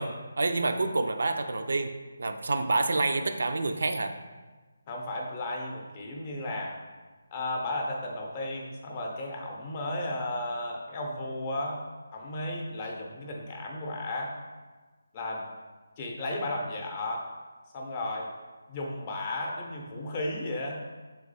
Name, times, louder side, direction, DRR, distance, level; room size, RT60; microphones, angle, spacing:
voice 1, 0.0-1.9 2.2-4.1, right 3 dB, 70° right, 7 dB, 0.3 m, -28 dB
voice 2, 4.9-6.8 7.3-11.8 12.1-14.3 15.1-15.5 16.0-17.3 17.7-18.3 18.7-20.8, left 1 dB, 25° left, -1 dB, 0.6 m, -34 dB
3.5 x 3.0 x 4.0 m, 1.3 s
figure-of-eight pair, 165°, 0 cm